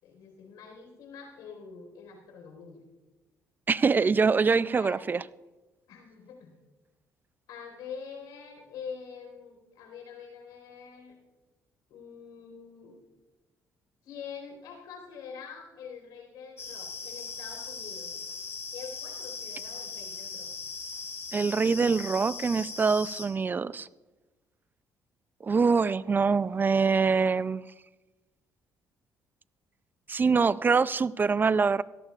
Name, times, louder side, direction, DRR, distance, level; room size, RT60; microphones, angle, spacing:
voice 1, 0.0-2.8 4.6-5.0 5.9-6.5 7.5-11.1 11.9-13.0 14.0-18.1 18.7-20.5, left 6 dB, 85° left, 2 dB, 4.3 m, -45 dB
voice 2, 3.7-5.2 21.3-23.9 25.4-27.7 30.1-31.8, right 5 dB, 30° right, 18 dB, 0.3 m, -24 dB
sound 1, 16.6-23.3, left 5 dB, 40° left, 2.8 m, -39 dB
17.5 x 13.5 x 2.4 m, 1.1 s
cardioid pair, 85°, 7 cm